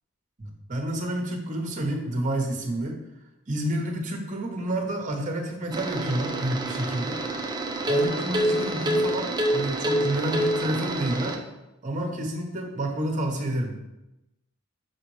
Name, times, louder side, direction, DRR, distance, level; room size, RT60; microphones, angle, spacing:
voice 1, 0.4-3.0 3.5-7.2 7.9-11.4 11.8-13.8, right 1 dB, 40° right, 3 dB, 1.0 m, -29 dB
sound 1, 5.7-11.4, right 1 dB, 20° right, 0.5 m, -27 dB
6.4 x 4.6 x 3.2 m, 0.95 s
head